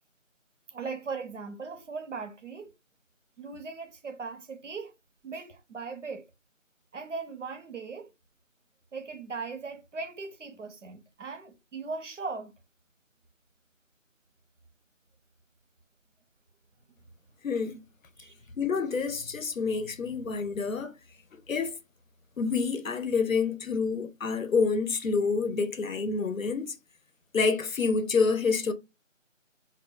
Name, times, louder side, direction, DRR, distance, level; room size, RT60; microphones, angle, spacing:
voice 1, 0.7-2.7 3.4-4.9 5.2-6.3 6.9-8.1 8.9-12.5 18.2-18.3, right 4 dB, 65° right, 0.6 m, -38 dB
voice 2, 17.4-17.8 18.6-20.9 21.3-21.8 22.4-26.8 27.3-28.7, left 4 dB, 85° left, 0.6 m, -28 dB
2.1 x 2.1 x 3.6 m
figure-of-eight pair, 165°, 39 cm